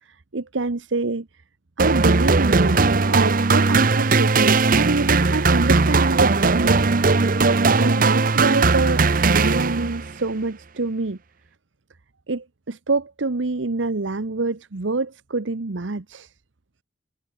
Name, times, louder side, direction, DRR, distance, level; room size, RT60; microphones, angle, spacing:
voice 1, 0.0-1.3 1.8-6.8 7.8-11.2 12.3-16.3, right 3 dB, 90° right, 1.0 m, -26 dB
sound 1, 1.8-10.1, right 3 dB, 50° right, 0.9 m, -18 dB
head